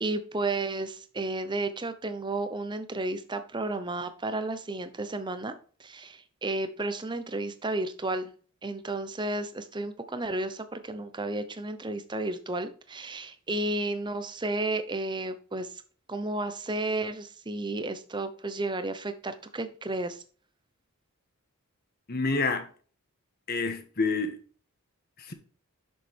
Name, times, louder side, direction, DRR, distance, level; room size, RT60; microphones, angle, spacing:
voice 1, 0.0-8.3 8.6-15.8 16.1-20.2, right 2 dB, 20° right, 0.8 m, -32 dB
voice 2, 22.1-22.7 23.5-24.4 25.3-25.4, left 3 dB, 45° left, 1.3 m, -28 dB
7.3 x 6.4 x 3.5 m
head